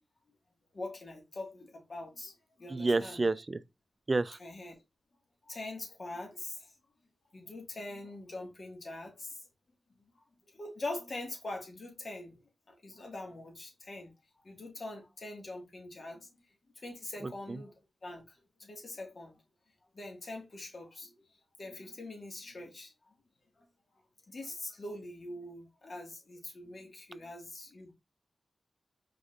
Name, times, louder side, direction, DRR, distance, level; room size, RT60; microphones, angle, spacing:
voice 1, 0.7-3.2 4.4-4.8 5.5-6.7 7.3-9.5 10.1-12.4 12.7-14.1 14.4-16.3 16.8-19.4 19.9-21.1 21.6-23.1 23.6-23.7 24.3-27.9, left 2 dB, 50° left, 1.9 m, -43 dB
voice 2, 2.7-3.6 4.1-4.4 17.2-17.6, right 3 dB, 35° right, 0.4 m, -30 dB
5.0 x 4.1 x 2.5 m
wide cardioid pair, 80°, 0 cm